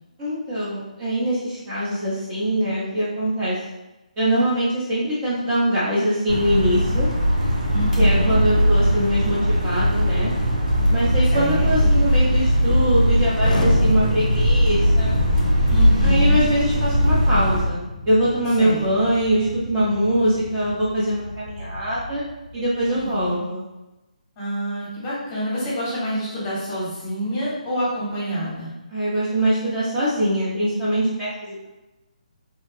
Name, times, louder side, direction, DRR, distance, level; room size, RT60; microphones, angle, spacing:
voice 1, 0.2-3.6 4.2-7.1 8.0-10.3 10.9-15.2 16.0-22.2 22.5-23.6 28.9-31.7, right 1 dB, 20° right, -9 dB, 0.7 m, -23 dB
sound 1, 6.3-17.6, equal, 80° right, 1.0 m, -19 dB
voice 2, 7.7-8.4 11.3-11.9 15.7-16.4 18.6-18.8 22.9-23.4 24.4-28.7, equal, 25° left, -7 dB, 1.0 m, -27 dB
Explosion, 13.4-23.3, left 1 dB, 75° left, 0.4 m, -33 dB
2.8 x 2.2 x 2.6 m, 1.0 s
figure-of-eight pair, 145°, 4 cm